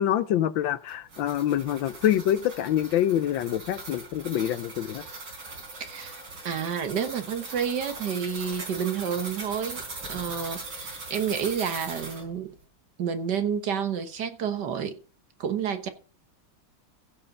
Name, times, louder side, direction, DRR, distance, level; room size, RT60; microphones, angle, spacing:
voice 1, 0.0-5.0, left 11 dB, 80° left, 1.4 m, -26 dB
sound 1, 0.9-12.2, right 3 dB, 85° right, 4.8 m, -40 dB
voice 2, 5.7-6.2 6.5-9.8 10.1-12.5 13.0-15.0 15.4-15.9, right 7 dB, 60° right, 1.7 m, -30 dB
15.5 x 5.4 x 5.3 m
omnidirectional pair, 2.2 m